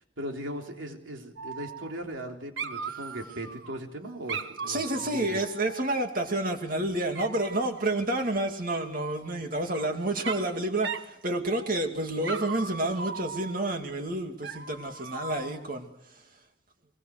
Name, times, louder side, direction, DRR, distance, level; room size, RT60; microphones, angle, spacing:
voice 1, 0.2-5.4, right 1 dB, 85° right, 3.5 m, -38 dB
Dog, 1.4-2.3 2.6-3.8 4.3-6.4 7.1-7.8 9.2-9.9 10.2-10.6 10.8-11.1 11.5-11.9 12.2-13.7 14.4-15.7, right 5 dB, 70° right, 1.2 m, -38 dB
voice 2, 4.7-16.2, right 1 dB, 45° right, 2.5 m, -29 dB
23.0 x 21.5 x 6.6 m
head